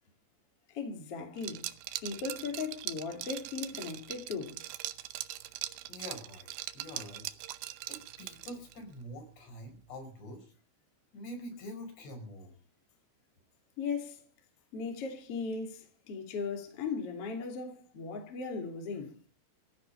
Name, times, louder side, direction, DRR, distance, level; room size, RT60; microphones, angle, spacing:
voice 1, 0.7-1.7 2.0-4.6 13.8-14.3 14.7-19.2, left 5 dB, 40° left, 2.7 m, -37 dB
Liquid, 1.4-8.8, right 14 dB, 85° right, 2.1 m, -41 dB
voice 2, 5.9-6.5 6.7-7.3 7.9-10.5 11.1-12.5, equal, 60° left, 6.9 m, -45 dB
16.0 x 9.5 x 8.6 m
omnidirectional pair, 5.5 m